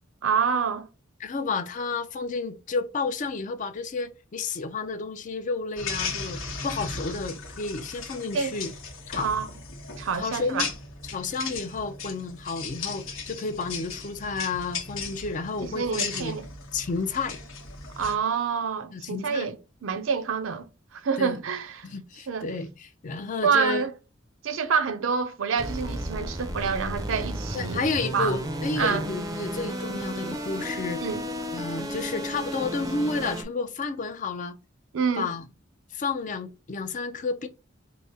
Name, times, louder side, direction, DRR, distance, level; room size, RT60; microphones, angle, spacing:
voice 1, 0.2-0.9 8.3-8.6 9.2-9.4 10.0-10.7 15.6-16.5 18.0-19.5 19.8-20.7 20.9-21.9 22.3-22.5 23.4-23.9 24.4-27.8 28.1-28.3 28.8-29.0 31.0-31.2 34.9-35.3, right 6 dB, 75° right, 0.5 m, -27 dB
voice 2, 1.2-8.7 9.1-9.3 10.1-10.7 11.0-16.4 16.7-17.4 18.9-19.5 21.2-21.4 21.8-23.9 27.5-31.0 31.5-34.5 35.2-35.5 35.9-37.5, left 4 dB, 40° left, 0.4 m, -31 dB
sound 1, 5.8-18.1, left 5 dB, 90° left, 1.0 m, -36 dB
sound 2, 25.6-33.4, equal, 20° right, 0.5 m, -33 dB
4.7 x 2.0 x 2.7 m
head